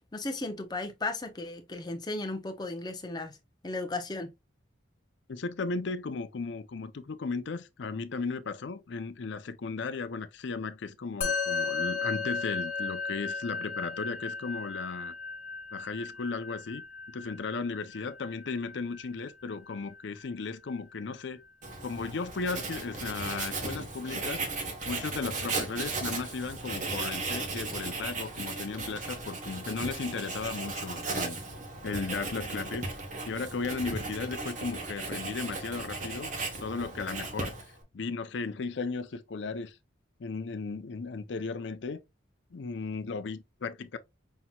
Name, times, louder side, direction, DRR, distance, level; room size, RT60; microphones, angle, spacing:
voice 1, 0.1-3.4 3.6-4.3, left 2 dB, 20° left, 0.6 m, -35 dB
voice 2, 5.3-15.1 15.7-21.4 21.8-24.4 24.9-31.4 31.8-32.9 33.3-36.3 36.6-37.5 37.9-39.8 40.2-42.0 42.5-44.0, left 4 dB, 65° left, 0.5 m, -35 dB
Musical instrument, 11.2-20.7, left 4 dB, 45° left, 0.9 m, -36 dB
Writing, 21.6-37.8, right 3 dB, 40° right, 1.1 m, -36 dB
5.6 x 2.9 x 2.3 m
head